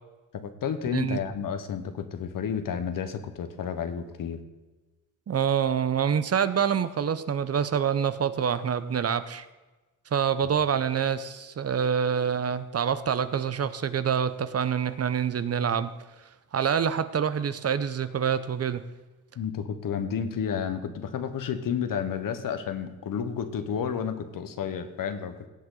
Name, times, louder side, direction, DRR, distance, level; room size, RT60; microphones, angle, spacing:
voice 1, 0.3-4.4 10.4-10.5 19.4-25.5, left 7 dB, 70° left, 9 dB, 1.2 m, -31 dB
voice 2, 5.3-9.5 10.1-15.9 16.5-18.8, right 7 dB, 45° right, 13 dB, 0.7 m, -26 dB
17.0 x 7.9 x 3.9 m, 1.2 s
cardioid pair, 85°, 34 cm